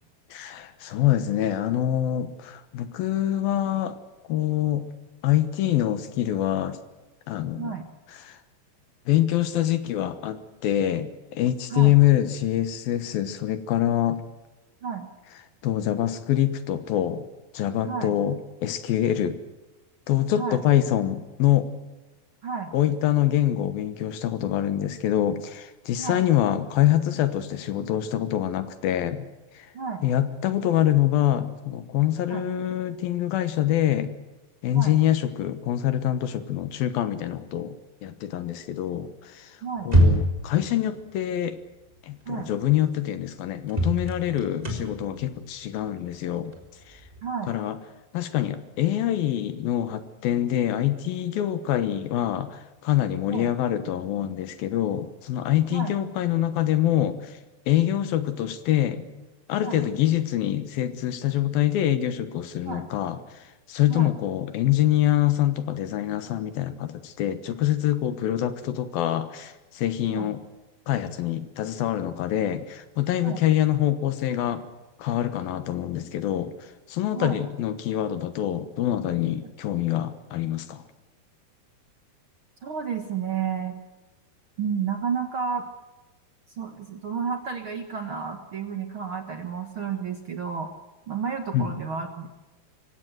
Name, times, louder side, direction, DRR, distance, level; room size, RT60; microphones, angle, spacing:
voice 1, 0.3-4.0 4.3-4.9 5.2-6.8 7.3-7.7 8.2-8.4 9.1-14.2 15.6-17.2 17.5-19.4 20.1-21.7 22.7-29.3 29.5-29.7 30.0-34.1 34.6-39.5 39.9-41.6 42.0-46.5 46.9-47.0 47.5-47.8 48.1-57.3 57.7-59.1 59.5-63.2 63.7-70.4 70.9-74.6 75.0-76.5 76.9-80.8 91.5-91.7, left 12 dB, 70° left, 12 dB, 2.8 m, -25 dB
voice 2, 7.6-7.9 11.7-12.0 14.8-15.1 17.8-18.1 20.3-20.6 22.4-22.7 26.0-26.2 29.7-30.0 32.3-32.5 34.7-34.9 39.6-39.9 42.2-42.5 47.2-47.5 53.3-53.5 55.7-55.9 59.6-59.8 62.7-62.9 63.9-64.1 70.1-70.3 73.2-73.4 77.1-77.4 82.6-83.8 84.6-85.6 86.6-90.7 91.1-92.3, right 6 dB, 75° right, 6 dB, 1.2 m, -31 dB
sound 1, 39.8-40.5 42.3-42.4 42.8-42.9 43.7-47.3, equal, 10° right, 3.3 m, -24 dB
23.5 x 17.0 x 7.9 m, 1.1 s
omnidirectional pair, 4.7 m